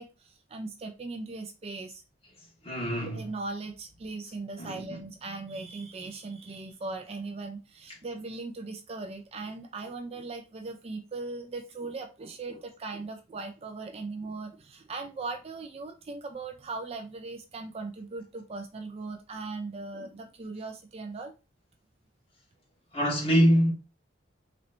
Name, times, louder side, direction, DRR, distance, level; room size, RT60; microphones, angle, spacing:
voice 1, 0.0-2.0 3.0-21.3, right 3 dB, 30° right, 0.4 m, -39 dB
voice 2, 2.6-3.2 4.6-5.0 19.9-20.1 22.9-23.7, equal, 30° left, 1.5 m, -24 dB
4.2 x 3.1 x 2.5 m
head